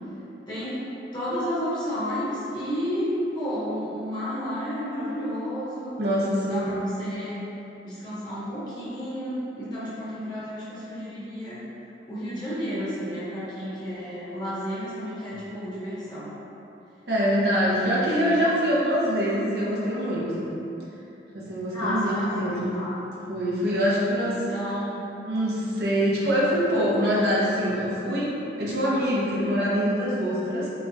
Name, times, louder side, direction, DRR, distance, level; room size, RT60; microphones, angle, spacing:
voice 1, 0.5-0.8 1.1-3.1 3.3-6.0 6.4-7.4 7.8-11.6 12.1-16.3 18.0-18.3 21.7-22.9 24.2-25.1, equal, 25° left, -11 dB, 0.9 m, -31 dB
voice 2, 6.0-6.7 17.1-20.5 21.3-22.7 23.3-24.4 25.2-28.3 28.6-30.7, equal, 65° right, -6 dB, 0.8 m, -24 dB
5.1 x 2.3 x 2.7 m, 3.0 s
head